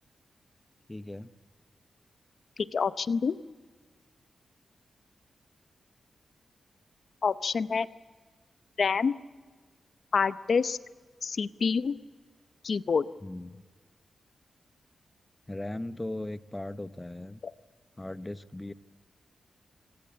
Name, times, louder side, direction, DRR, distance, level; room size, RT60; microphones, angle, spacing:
voice 1, 0.9-1.3 13.2-13.7 15.5-17.4 18.0-18.7, left 1 dB, 15° left, 13 dB, 0.7 m, -38 dB
voice 2, 2.7-3.4 7.2-7.9 8.8-9.1 10.1-10.8 11.2-12.0 12.6-13.0, left 5 dB, 50° left, 14 dB, 0.7 m, -27 dB
26.0 x 17.5 x 8.4 m, 1.4 s
wide cardioid pair, 140°, 0 cm